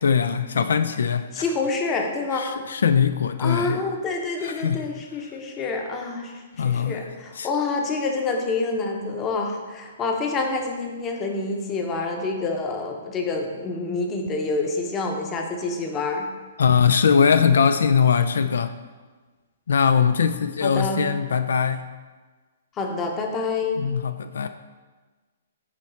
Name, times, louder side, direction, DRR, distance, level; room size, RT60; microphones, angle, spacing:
voice 1, 0.0-1.4 2.3-3.8 4.4-4.9 6.6-7.0 7.4-7.5 16.6-18.7 19.7-21.8 23.8-24.5, left 6 dB, 85° left, 11 dB, 0.3 m, -21 dB
voice 2, 1.3-2.6 3.4-16.3 20.6-21.0 22.8-23.8, left 3 dB, 20° left, 2 dB, 0.7 m, -27 dB
9.4 x 3.2 x 4.2 m, 1.4 s
hypercardioid pair, 160°, 0 cm